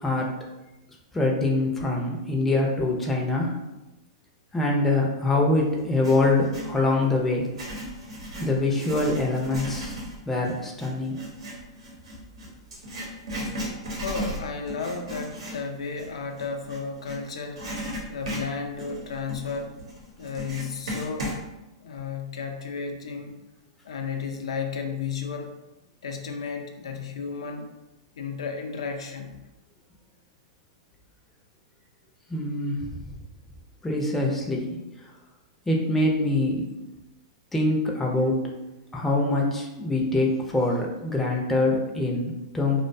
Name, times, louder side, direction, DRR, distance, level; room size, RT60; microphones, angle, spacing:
voice 1, 1.1-3.5 4.5-7.5 8.4-10.0 10.3-11.2 32.3-33.1 33.8-34.8 35.7-36.7 37.5-38.4 38.9-42.8, left 2 dB, 5° left, -1 dB, 0.4 m, -24 dB
Writing, 5.8-6.8 7.4-17.2 17.5-21.4, equal, 90° right, 0.9 m, -36 dB
voice 2, 14.0-17.6 18.1-19.7 20.2-21.3 21.8-23.4 23.8-25.5 26.0-27.7 28.2-29.4, left 5 dB, 90° left, 3 dB, 0.4 m, -33 dB
2.4 x 2.1 x 2.5 m, 0.98 s
hypercardioid pair, 140°, 3 cm